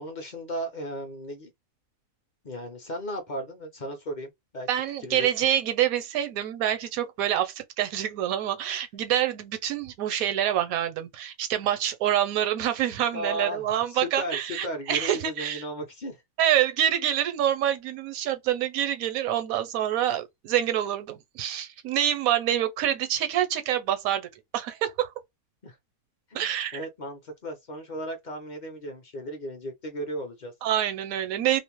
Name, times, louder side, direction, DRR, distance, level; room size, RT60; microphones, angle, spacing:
voice 1, 0.0-1.5 2.4-4.7 5.0-5.3 13.1-16.2 25.6-25.8 26.3-30.5, equal, 45° left, 0.6 m, -35 dB
voice 2, 4.7-15.6 16.4-25.1 26.3-26.8 30.6-31.6, right 11 dB, 80° right, 1.0 m, -26 dB
2.5 x 2.0 x 2.9 m
omnidirectional pair, 1.5 m